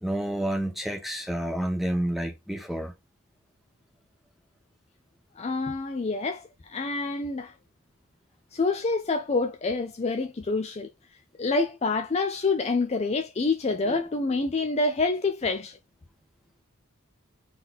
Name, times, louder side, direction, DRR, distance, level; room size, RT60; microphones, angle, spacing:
voice 1, 0.0-2.9 13.8-14.1, right 1 dB, ahead, 1.1 m, -29 dB
voice 2, 5.4-7.5 8.5-10.9 11.4-15.8, left 3 dB, 30° left, 0.4 m, -27 dB
4.1 x 3.2 x 4.0 m
head